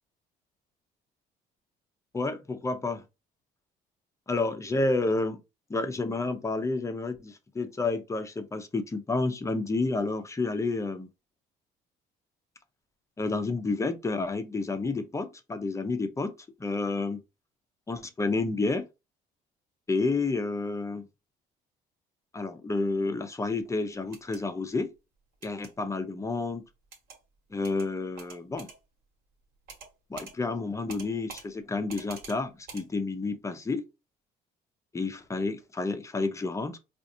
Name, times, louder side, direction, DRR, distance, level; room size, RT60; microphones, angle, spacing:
voice 1, 2.1-3.0 4.3-5.4 5.7-11.1 13.2-16.3 16.6-17.2 17.9-18.9 19.9-21.1 22.3-24.9 25.4-26.7 27.5-28.7 30.1-33.9 34.9-36.8, left 3 dB, 15° left, 0.6 m, -30 dB
sound 1, 24.0-24.4 25.4-25.7 26.9-27.2 27.6-27.9 28.2-28.8 29.7-29.9 30.2-30.3 30.9-31.4 31.9-32.4 32.7-32.8, right 4 dB, 65° right, 1.4 m, -45 dB
4.7 x 2.5 x 2.7 m
cardioid pair, 110°, 17 cm